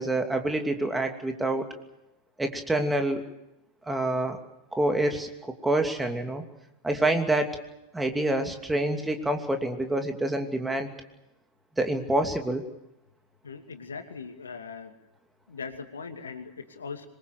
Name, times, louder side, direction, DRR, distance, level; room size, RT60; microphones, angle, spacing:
voice 1, 0.0-1.7 2.4-3.2 3.9-4.4 4.7-5.3 5.6-6.4 6.8-7.6 7.9-10.9 11.8-12.6, right 1 dB, 5° right, 5 dB, 2.8 m, -27 dB
voice 2, 13.4-14.9 15.5-17.1, left 5 dB, 70° left, 7 dB, 2.6 m, -40 dB
26.0 x 21.5 x 6.7 m, 0.90 s
figure-of-eight pair, 90°, 0 cm